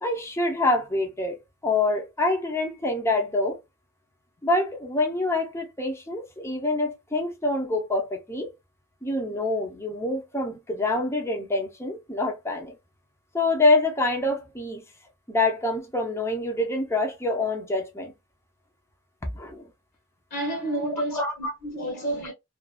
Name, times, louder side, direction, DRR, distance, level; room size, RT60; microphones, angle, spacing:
voice 1, 0.0-3.6 4.4-8.5 9.0-12.8 13.3-14.8 15.3-18.1 19.3-19.7 21.1-21.5, left 2 dB, 15° left, 0.7 m, -26 dB
voice 2, 20.3-22.3, right 1 dB, 55° left, 1.0 m, -30 dB
2.5 x 2.5 x 2.2 m
head